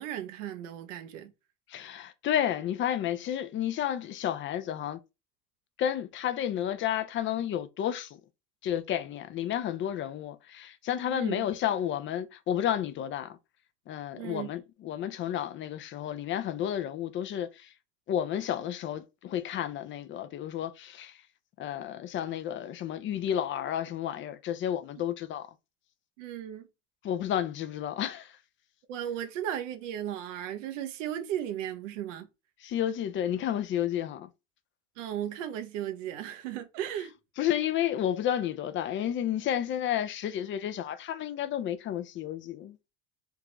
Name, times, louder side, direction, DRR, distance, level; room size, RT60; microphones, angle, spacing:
voice 1, 0.0-1.3 11.1-11.4 14.2-14.5 26.2-26.7 28.9-32.3 35.0-37.1, right 10 dB, 85° right, 0.7 m, -35 dB
voice 2, 1.7-5.0 5.8-8.2 8.6-13.4 13.9-17.7 18.1-21.2 21.6-25.5 27.0-28.4 32.6-34.3 37.4-42.8, left 10 dB, 35° left, 0.4 m, -31 dB
3.5 x 2.4 x 3.0 m
supercardioid pair, 100°, 37 cm